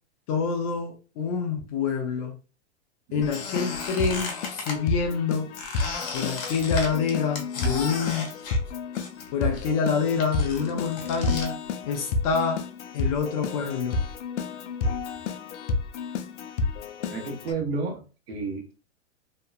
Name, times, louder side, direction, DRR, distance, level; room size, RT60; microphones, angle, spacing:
voice 1, 0.3-2.4 3.1-5.5 6.1-8.3 9.3-11.6 11.9-12.6 12.9-14.0, left 5 dB, 30° left, 0.4 m, -27 dB
Keyboard (musical), 3.2-17.5, left 4 dB, 85° left, 0.5 m, -31 dB
Squeak, 3.3-4.8 5.6-9.3 9.5-11.5, left 4 dB, 50° left, 1.0 m, -35 dB
voice 2, 17.1-18.8, right 4 dB, 60° right, 1.0 m, -32 dB
2.9 x 2.1 x 2.3 m
hypercardioid pair, 140°, 34 cm